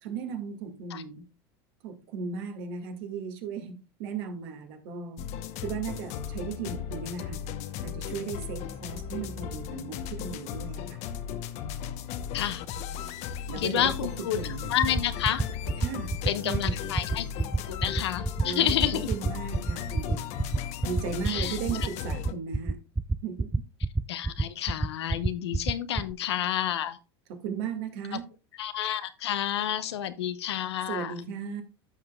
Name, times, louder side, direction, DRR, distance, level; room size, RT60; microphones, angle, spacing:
voice 1, 0.0-1.2 1.8-5.3 5.6-7.4 7.8-11.0 13.5-14.1 14.4-14.8 15.8-16.2 16.4-16.8 18.4-20.3 20.8-22.9 23.2-23.5 27.3-28.3 30.9-31.6, right 6 dB, 65° right, 1.9 m, -36 dB
sound 1, 5.2-22.3, left 8 dB, 55° left, 0.9 m, -36 dB
voice 2, 13.6-14.4 14.7-15.4 16.2-17.3 17.7-19.1 21.3-21.6 24.1-27.0 28.6-31.1, left 11 dB, 85° left, 0.8 m, -29 dB
sound 2, 14.8-26.1, right 3 dB, 10° right, 0.3 m, -26 dB
14.0 x 5.8 x 2.3 m
hypercardioid pair, 90°, 14 cm